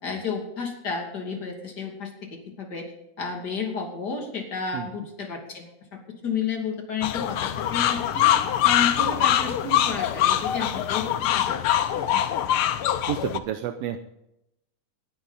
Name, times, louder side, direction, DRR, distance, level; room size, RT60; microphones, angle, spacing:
voice 1, 0.0-2.9 3.2-8.3 8.6-11.6 12.1-12.2, left 5 dB, 35° left, 2 dB, 3.0 m, -32 dB
sound 1, 7.0-13.4, left 11 dB, 80° left, 1.2 m, -23 dB
voice 2, 13.1-14.0, right 11 dB, 75° right, 8 dB, 1.6 m, -30 dB
19.0 x 11.0 x 4.1 m, 0.84 s
omnidirectional pair, 3.4 m